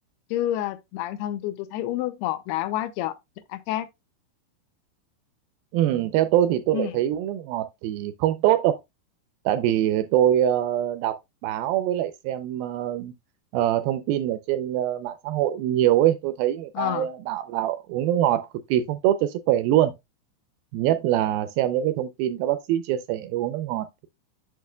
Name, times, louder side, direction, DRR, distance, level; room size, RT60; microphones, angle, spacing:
voice 1, 0.3-3.1 3.5-3.9 6.7-7.0 16.7-17.1, left 13 dB, 85° left, 2.7 m, -28 dB
voice 2, 5.7-8.8 9.5-11.1 11.4-13.1 13.5-19.9 20.7-24.1, right 12 dB, 80° right, 2.2 m, -24 dB
8.4 x 6.6 x 2.2 m
omnidirectional pair, 4.7 m